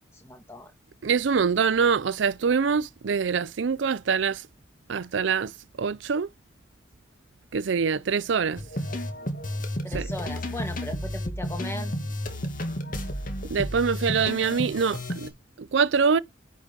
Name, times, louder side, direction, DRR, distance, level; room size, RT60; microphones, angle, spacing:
voice 1, 0.2-0.7 9.8-11.9, left 1 dB, 15° left, 1.8 m, -37 dB
voice 2, 1.0-4.4 4.9-5.5 5.8-6.3 7.5-8.6 9.9-10.1 13.5-15.3 15.6-16.2, right 6 dB, 65° right, 0.5 m, -24 dB
sound 1, 8.6-15.3, left 1 dB, 45° left, 2.1 m, -32 dB
9.8 x 5.0 x 5.1 m
head